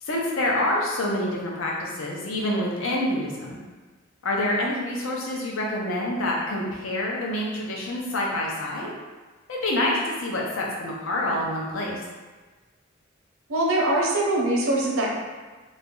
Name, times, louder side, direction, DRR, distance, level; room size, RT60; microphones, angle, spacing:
voice 1, 0.0-3.6 4.2-8.9 9.5-12.0, left 1 dB, 85° left, -3 dB, 0.6 m, -27 dB
voice 2, 13.5-15.1, right 1 dB, 85° right, -2 dB, 0.6 m, -22 dB
2.5 x 2.1 x 3.6 m, 1.3 s
head